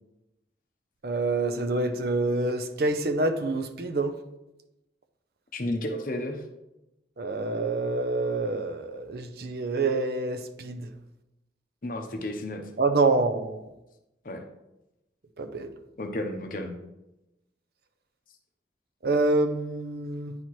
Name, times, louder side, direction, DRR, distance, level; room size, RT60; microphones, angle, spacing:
voice 1, 1.0-4.1 7.2-10.8 12.8-13.6 15.4-15.7 19.0-20.4, right 2 dB, 60° right, 8 dB, 0.6 m, -26 dB
voice 2, 5.5-6.4 11.8-12.7 14.2-14.4 16.0-16.7, left 1 dB, 50° left, 4 dB, 0.8 m, -32 dB
9.4 x 4.3 x 3.1 m, 0.92 s
head